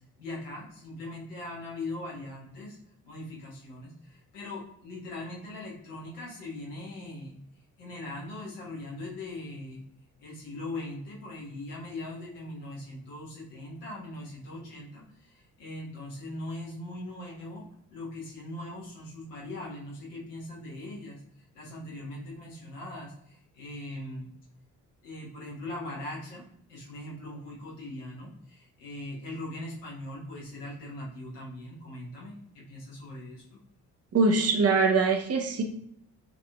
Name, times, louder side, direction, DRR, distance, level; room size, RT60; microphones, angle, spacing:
voice 1, 0.2-2.8 3.0-7.3 7.8-9.8 10.2-21.2 21.5-24.3 25.0-33.6, left 1 dB, 75° left, -5 dB, 1.2 m, -40 dB
voice 2, 34.1-35.6, right 4 dB, 30° right, 3 dB, 0.7 m, -23 dB
5.4 x 2.8 x 2.2 m, 0.72 s
figure-of-eight pair, 40°, 47 cm